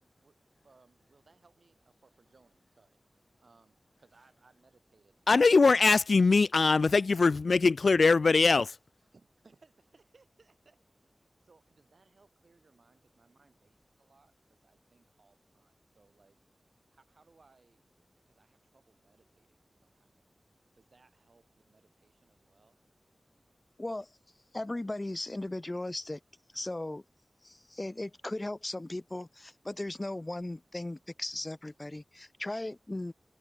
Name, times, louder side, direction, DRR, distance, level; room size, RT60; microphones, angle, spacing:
voice 1, 0.6-3.0 3.4-6.0 6.4-6.5 9.1-11.1 11.4-16.4 16.9-20.3 20.7-22.8, right 4 dB, 70° right, 7.2 m, -66 dB
voice 2, 5.3-8.7, left 4 dB, 70° left, 0.5 m, -22 dB
voice 3, 23.8-24.1 24.5-26.2 26.5-27.0 27.4-33.1, left 2 dB, 25° left, 0.9 m, -37 dB
wide cardioid pair, 85°, 0 cm